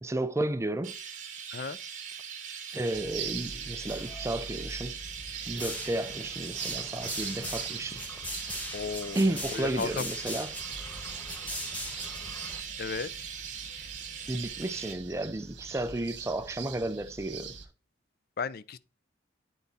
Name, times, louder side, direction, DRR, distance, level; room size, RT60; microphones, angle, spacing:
voice 1, 0.0-0.9 2.7-5.0 5.5-8.1 9.1-10.6 14.3-17.5, right 1 dB, 15° right, 0.4 m, -32 dB
Chirp tweet, 0.8-14.9, right 7 dB, 40° right, 1.8 m, -42 dB
sound 1, 2.9-17.6, right 7 dB, 65° right, 1.4 m, -42 dB
sound 2, 3.0-3.4 3.7-4.6 5.4-12.6, left 1 dB, 10° left, 1.2 m, -40 dB
voice 2, 8.7-9.2 9.5-10.0 12.8-13.1 18.4-18.8, left 5 dB, 50° left, 0.4 m, -34 dB
9.1 x 4.0 x 4.0 m
head